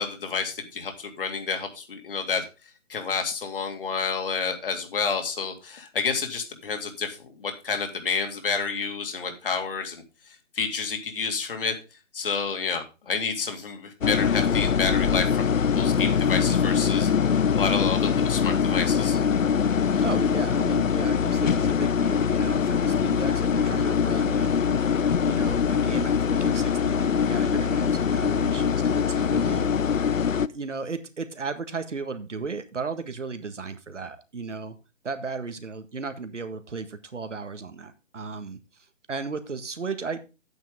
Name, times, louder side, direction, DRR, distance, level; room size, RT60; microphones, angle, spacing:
voice 1, 0.0-2.4 2.9-11.8 12.1-19.2, left 5 dB, 45° left, 5 dB, 2.3 m, -30 dB
sound 1, 14.0-30.5, left 7 dB, 85° left, 0.7 m, -23 dB
voice 2, 20.0-30.0 30.5-34.8 35.0-38.6 39.1-40.2, right 4 dB, 70° right, 9 dB, 1.7 m, -35 dB
10.0 x 9.1 x 3.6 m, 0.29 s
figure-of-eight pair, 155°, 38 cm